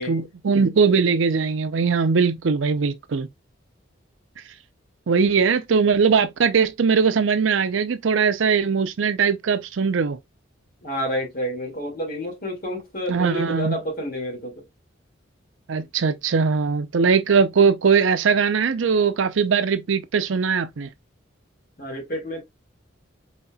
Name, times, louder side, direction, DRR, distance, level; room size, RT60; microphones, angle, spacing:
voice 1, 0.0-3.3 5.1-10.2 13.1-13.8 15.7-20.9, right 5 dB, 80° right, 0.5 m, -20 dB
voice 2, 10.8-14.6 21.8-22.4, equal, 50° left, 2.1 m, -29 dB
4.1 x 4.0 x 2.2 m
head